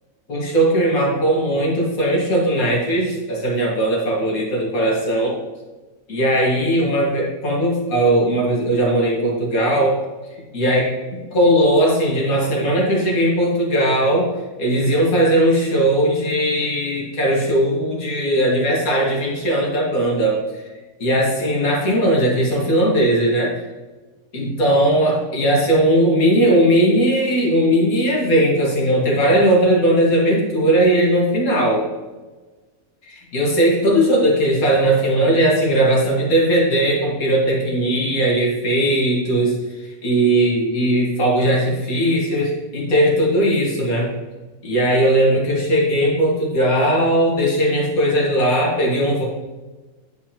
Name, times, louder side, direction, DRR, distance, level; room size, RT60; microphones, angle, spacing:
voice 1, 0.3-5.4 6.1-10.0 10.5-11.0 11.3-14.3 14.6-20.6 21.0-23.6 24.3-31.9 33.0-44.1 44.6-49.2, right 1 dB, 80° left, -3 dB, 2.1 m, -18 dB
9.7 x 4.6 x 2.9 m, 1.2 s
omnidirectional pair, 1.5 m